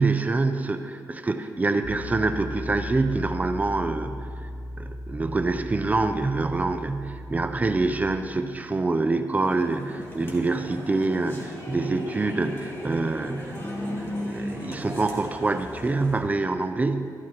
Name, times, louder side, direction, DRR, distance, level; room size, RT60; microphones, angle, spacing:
voice 1, 0.0-4.5 4.8-13.6 14.0-17.1, right 3 dB, 20° right, 8 dB, 0.4 m, -26 dB
Piano, 1.8-8.1, equal, 40° right, 1.0 m, -37 dB
sound 1, 9.4-16.2, left 1 dB, 35° left, 2.0 m, -36 dB
13.5 x 12.5 x 2.9 m, 2.4 s
wide cardioid pair, 145°, 7 cm